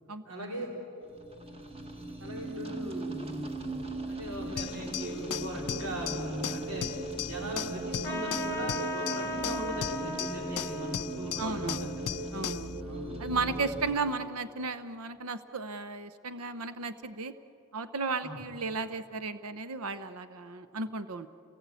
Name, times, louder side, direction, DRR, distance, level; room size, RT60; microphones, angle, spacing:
voice 1, 0.2-0.7 2.2-6.9 7.2-12.2 12.8-13.6 18.2-18.4, right 1 dB, 85° right, -1 dB, 3.8 m, -40 dB
sound 1, 1.1-13.9, right 2 dB, 25° right, 1.6 m, -38 dB
sound 2, 4.6-12.7, left 11 dB, 85° left, 0.5 m, -37 dB
Trumpet, 8.0-13.0, left 1 dB, 10° left, 1.2 m, -39 dB
voice 2, 11.4-11.9 12.3-12.8 13.2-17.3 17.7-21.3, right 4 dB, 70° right, 11 dB, 0.8 m, -34 dB
29.5 x 19.0 x 8.3 m, 2.7 s
head